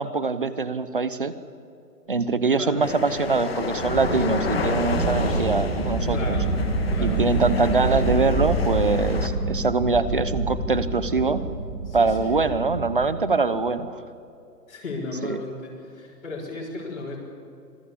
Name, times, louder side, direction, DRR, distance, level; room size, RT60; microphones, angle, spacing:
voice 1, 0.0-1.3 2.1-6.4 7.0-11.4 11.9-14.0 15.2-15.4, right 3 dB, 35° right, 14 dB, 0.9 m, -23 dB
voice 2, 2.5-2.9 6.1-6.5 6.9-7.3 11.9-12.3 14.7-17.2, left 3 dB, 55° left, -4 dB, 6.0 m, -35 dB
sound 1, 2.8-9.3, left 4 dB, 40° left, 1.8 m, -30 dB
sound 2, 3.7-13.1, right 2 dB, 15° right, 1.9 m, -27 dB
27.0 x 19.0 x 8.5 m, 2.7 s
hypercardioid pair, 180°, 48 cm